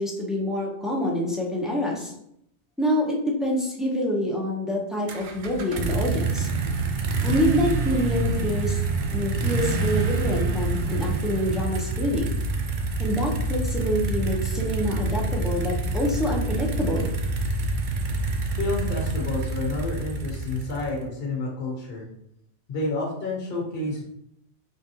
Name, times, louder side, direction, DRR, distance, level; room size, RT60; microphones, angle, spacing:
voice 1, 0.0-2.1 2.8-6.5 7.2-8.8 9.1-12.4 13.0-17.1, equal, ahead, -2 dB, 0.4 m, -26 dB
sound 1, 5.1-21.0, right 3 dB, 60° right, 0.5 m, -27 dB
voice 2, 18.6-22.0 22.7-24.0, left 2 dB, 55° left, -2 dB, 1.0 m, -29 dB
3.7 x 3.4 x 2.8 m, 0.76 s
omnidirectional pair, 1.2 m